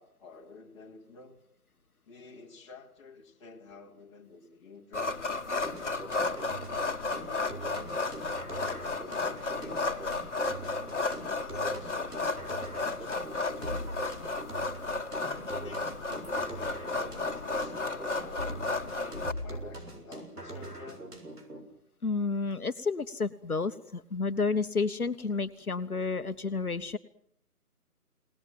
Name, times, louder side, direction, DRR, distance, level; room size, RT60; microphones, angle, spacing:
voice 1, 0.0-1.4 2.0-8.0 8.5-12.2 12.8-13.9 15.4-21.1, left 3 dB, 20° left, 0 dB, 2.8 m, -51 dB
sound 1, 4.9-19.3, left 3 dB, 50° left, 2.0 m, -33 dB
sound 2, 5.6-21.6, right 1 dB, 80° right, 7.0 m, -42 dB
voice 2, 22.0-27.0, left 4 dB, 70° left, 10 dB, 1.5 m, -31 dB
29.0 x 19.5 x 7.6 m, 0.69 s
figure-of-eight pair, 155°, 46 cm